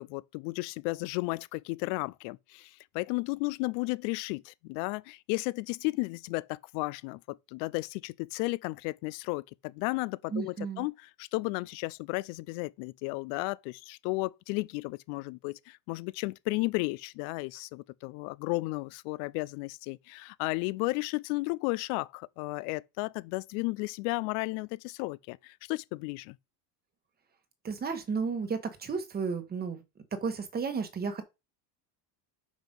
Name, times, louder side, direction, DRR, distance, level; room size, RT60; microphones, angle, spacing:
voice 1, 0.0-26.4, left 24 dB, 80° left, 0.6 m, -34 dB
voice 2, 10.3-10.9 27.6-29.8 30.1-31.2, right 5 dB, 20° right, 1.3 m, -33 dB
5.9 x 5.1 x 5.3 m
cardioid pair, 160°, 49 cm